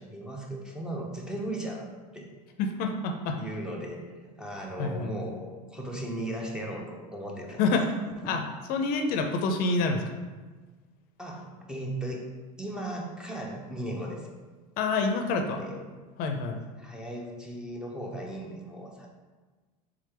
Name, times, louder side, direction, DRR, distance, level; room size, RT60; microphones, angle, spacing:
voice 1, 0.0-2.3 3.3-7.6 8.2-8.4 11.2-12.3 12.6-14.3 15.3-15.8 16.8-19.1, right 1 dB, 5° right, -1 dB, 0.5 m, -37 dB
voice 2, 2.6-3.4 4.8-5.1 7.6-7.9 8.2-8.4 8.7-10.0 14.8-15.6 16.2-16.6, left 3 dB, 55° left, 4 dB, 0.5 m, -27 dB
3.5 x 3.3 x 3.3 m, 1.3 s
supercardioid pair, 120°, 19 cm